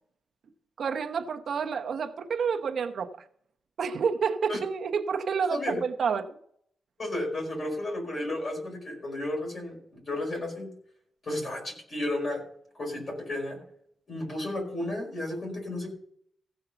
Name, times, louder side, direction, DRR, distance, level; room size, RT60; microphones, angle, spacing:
voice 1, 0.8-3.3 3.8-6.4, right 6 dB, 55° right, 0.9 m, -29 dB
voice 2, 7.0-10.7 11.2-12.4 12.7-13.6 14.1-15.9, left 1 dB, 40° left, 5.0 m, -33 dB
15.5 x 5.5 x 6.8 m
wide cardioid pair, 150°, 0 cm